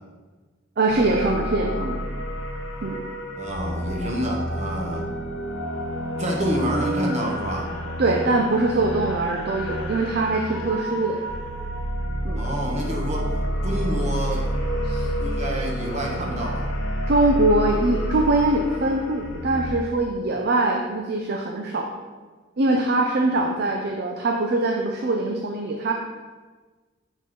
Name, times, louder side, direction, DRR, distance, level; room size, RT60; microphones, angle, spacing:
voice 1, 0.8-2.0 2.8-3.0 8.0-11.2 12.2-12.4 14.8-15.1 17.0-21.9 22.6-25.9, right 2 dB, 50° right, 2 dB, 0.5 m, -22 dB
sound 1, 0.9-19.7, equal, 65° left, 0.8 m, -29 dB
voice 2, 3.4-5.0 6.2-7.7 12.4-13.3 13.6-14.5 15.2-16.7 23.4-23.5, right 1 dB, 30° right, -1 dB, 1.0 m, -27 dB
6.2 x 3.8 x 5.3 m, 1.4 s
head